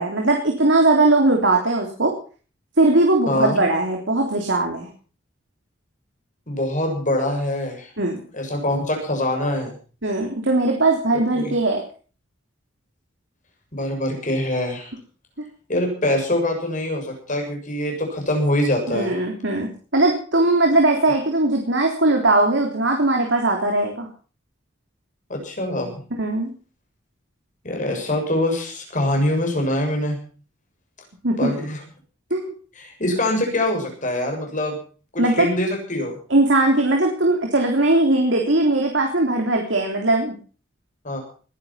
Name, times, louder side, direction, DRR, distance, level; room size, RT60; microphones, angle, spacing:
voice 1, 0.0-2.1 2.8-4.9 8.0-8.2 10.0-11.8 18.9-24.1 26.2-26.5 31.2-31.5 32.3-32.5 35.2-35.5 36.3-40.3, right 2 dB, 80° right, 1 dB, 3.6 m, -19 dB
voice 2, 3.3-3.6 6.5-7.9 8.3-9.7 11.4-11.5 13.7-14.9 15.7-19.1 25.3-26.0 27.6-30.2 31.4-31.8 32.8-34.8 35.1-36.2 41.0-41.2, left 1 dB, 45° left, 2 dB, 6.9 m, -24 dB
20.5 x 11.5 x 5.7 m, 0.40 s
head